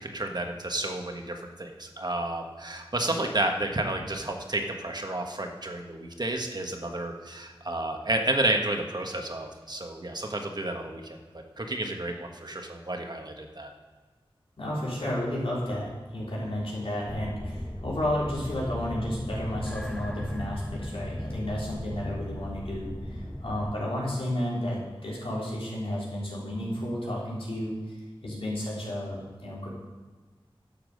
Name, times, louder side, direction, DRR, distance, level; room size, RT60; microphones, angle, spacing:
voice 1, 0.0-11.2 11.6-13.7, right 1 dB, 50° right, 3 dB, 1.4 m, -31 dB
voice 2, 14.6-27.8 28.2-29.7, left 1 dB, 80° left, -6 dB, 3.8 m, -32 dB
sound 1, 17.1-23.8, left 1 dB, 5° left, 0.3 m, -36 dB
11.5 x 7.3 x 5.4 m, 1.4 s
wide cardioid pair, 65°, 9 cm